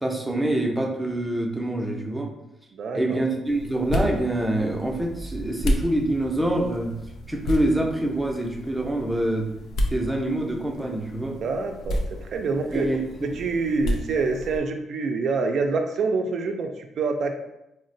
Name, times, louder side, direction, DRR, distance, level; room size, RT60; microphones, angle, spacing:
voice 1, 0.0-2.3 2.9-7.0 7.3-9.5 9.9-11.4 12.7-13.0, right 1 dB, 5° right, 0 dB, 0.5 m, -25 dB
voice 2, 2.7-3.2 11.4-12.9 13.2-17.4, right 4 dB, 65° right, 5 dB, 0.4 m, -26 dB
sound 1, 3.4-14.6, left 1 dB, 75° left, 0.4 m, -32 dB
3.7 x 2.1 x 2.6 m, 0.88 s
cardioid pair, 90°, 0 cm